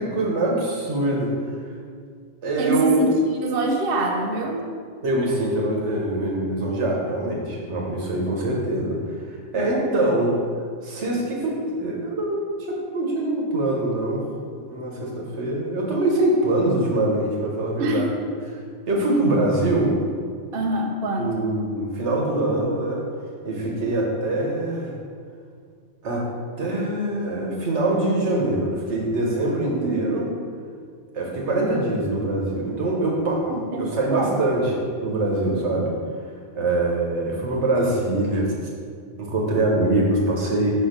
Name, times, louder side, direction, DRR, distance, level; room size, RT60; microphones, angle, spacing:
voice 1, 0.0-1.5 2.4-3.1 5.0-9.0 9.2-10.4 10.8-14.2 14.5-18.1 18.9-20.0 21.2-23.0 23.4-24.9 26.0-26.3 26.6-30.2 31.1-35.9 36.6-38.5 39.2-40.9, right 2 dB, 80° right, -2 dB, 1.4 m, -23 dB
voice 2, 2.6-4.7 17.8-18.1 20.5-21.3 29.7-30.3 33.4-34.4, right 2 dB, 60° right, 2 dB, 0.8 m, -25 dB
5.5 x 4.5 x 5.1 m, 2.1 s
omnidirectional pair, 1.2 m